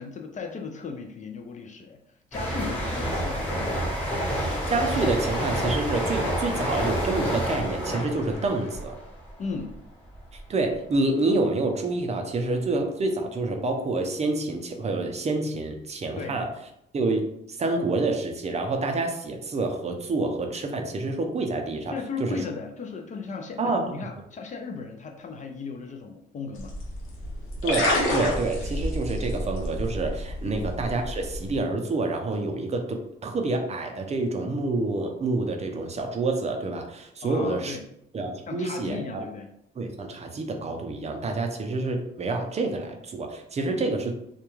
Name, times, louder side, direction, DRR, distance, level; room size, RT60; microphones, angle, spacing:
voice 1, 0.0-2.0 2.3-4.0 9.4-9.8 16.2-16.4 21.9-26.7 30.4-30.6 37.2-37.8 38.5-39.5 43.6-43.9, left 4 dB, 40° left, 4 dB, 0.4 m, -36 dB
sound 1, 2.3-9.8 10.1-10.4, equal, 10° left, 1.0 m, -29 dB
voice 2, 4.7-8.9 10.3-16.5 16.9-21.9 22.2-22.4 23.6-23.9 27.6-37.8 38.1-39.2 39.8-44.1, right 3 dB, 35° right, 4 dB, 0.4 m, -28 dB
sound 2, 26.6-31.6, left 1 dB, 90° left, 0.7 m, -29 dB
2.3 x 2.2 x 3.0 m, 0.78 s
cardioid pair, 90°, 20 cm